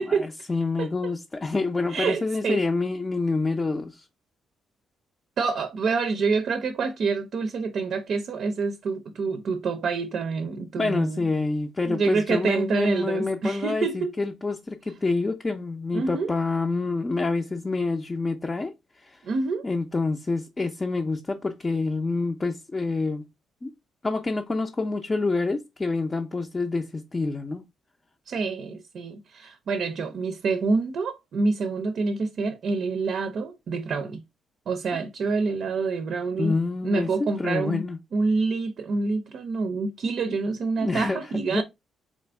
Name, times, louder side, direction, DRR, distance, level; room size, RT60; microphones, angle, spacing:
voice 1, 0.0-4.1 10.8-18.7 19.0-19.2 19.6-23.3 23.6-23.7 24.0-27.6 36.4-38.0 40.8-41.6, left 3 dB, 25° left, 0.5 m, -27 dB
voice 2, 0.8-1.1 1.9-2.6 5.4-11.2 11.8-14.1 15.9-16.3 19.2-19.7 28.3-34.2 34.7-36.5 36.8-37.8 38.1-41.6, right 4 dB, 60° right, 0.5 m, -27 dB
4.0 x 2.5 x 3.3 m
cardioid pair, 90°, 0 cm